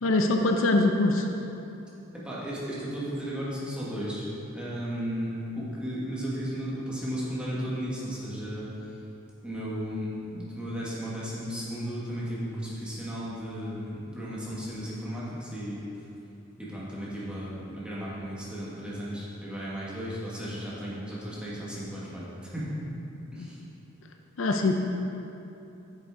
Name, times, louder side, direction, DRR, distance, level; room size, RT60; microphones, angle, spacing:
voice 1, 0.0-1.3 23.4-23.5 24.4-24.8, left 2 dB, 65° left, 4 dB, 0.5 m, -23 dB
voice 2, 2.1-4.2 4.5-8.7 9.4-15.8 16.6-22.8 23.3-23.6, equal, 5° right, -8 dB, 1.6 m, -35 dB
8.9 x 6.8 x 3.7 m, 2.8 s
head